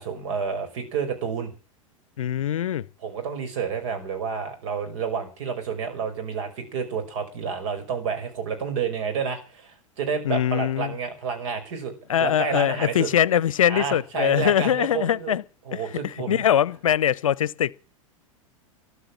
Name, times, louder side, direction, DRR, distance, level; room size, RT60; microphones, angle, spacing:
voice 1, 0.0-1.5 3.0-11.9 12.2-13.1 13.7-15.3 15.7-16.5, right 6 dB, 60° right, 5.2 m, -30 dB
voice 2, 2.2-2.9 10.2-10.9 12.1-15.4 15.7-17.7, left 10 dB, 70° left, 0.7 m, -22 dB
13.5 x 12.5 x 7.3 m
figure-of-eight pair, 90°, 18 cm